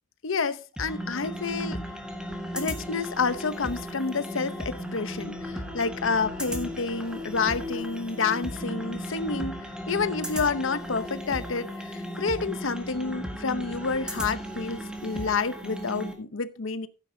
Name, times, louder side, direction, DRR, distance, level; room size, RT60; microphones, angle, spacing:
voice 1, 0.2-1.8 2.5-16.9, left 4 dB, 80° left, 0.8 m, -29 dB
sound 1, 0.8-16.1, equal, 5° right, 1.5 m, -35 dB
15.0 x 9.1 x 2.7 m
head